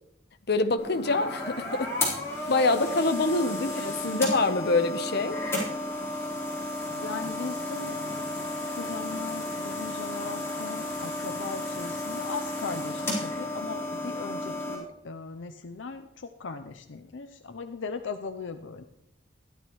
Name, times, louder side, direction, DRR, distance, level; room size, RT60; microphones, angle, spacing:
voice 1, 0.5-2.1 2.5-5.4, left 3 dB, 55° left, 8 dB, 0.9 m, -26 dB
sound 1, 0.8-14.7, left 1 dB, 15° left, 4.0 m, -33 dB
voice 2, 6.9-8.2 8.7-18.8, left 4 dB, 80° left, 7 dB, 0.6 m, -38 dB
15.5 x 11.0 x 3.1 m, 0.83 s
head